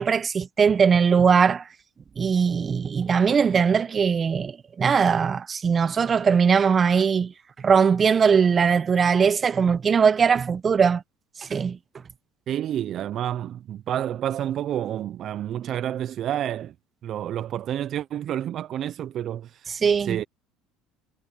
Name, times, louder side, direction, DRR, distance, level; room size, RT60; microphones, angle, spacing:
voice 1, 0.0-1.6 2.2-7.3 7.6-11.0 11.4-11.8 19.7-20.2, right 6 dB, 35° right, 1.3 m, -20 dB
voice 2, 12.5-16.7 17.0-19.8 20.0-20.2, right 11 dB, 55° right, 0.9 m, -29 dB
hypercardioid pair, 75°, 0 cm